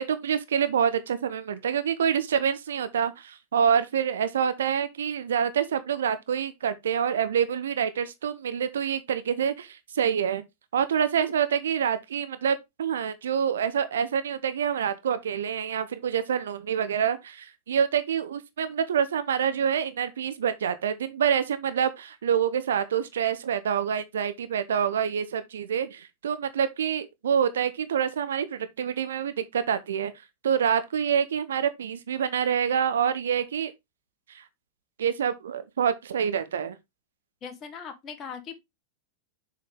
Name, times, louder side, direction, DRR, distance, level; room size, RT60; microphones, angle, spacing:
voice 1, 0.0-10.4 10.7-30.1 30.4-33.7 34.3-34.4 35.0-36.7, right 8 dB, 65° right, 0.7 m, -26 dB
voice 2, 37.4-38.6, left 6 dB, 30° left, 1.2 m, -39 dB
6.9 x 4.8 x 3.6 m
figure-of-eight pair, 90°, 0 cm